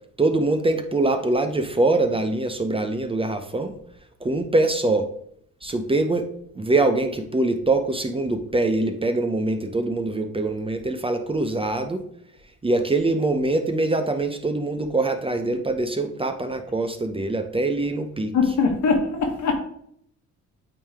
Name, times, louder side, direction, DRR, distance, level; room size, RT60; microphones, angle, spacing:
voice 1, 0.2-3.7 4.2-5.1 5.6-6.3 6.5-12.0 12.6-18.3, right 2 dB, 20° right, 7 dB, 0.7 m, -23 dB
voice 2, 18.3-19.5, left 4 dB, 70° left, 3 dB, 1.4 m, -21 dB
8.4 x 3.4 x 3.5 m, 0.70 s
cardioid pair, 90°, 30 cm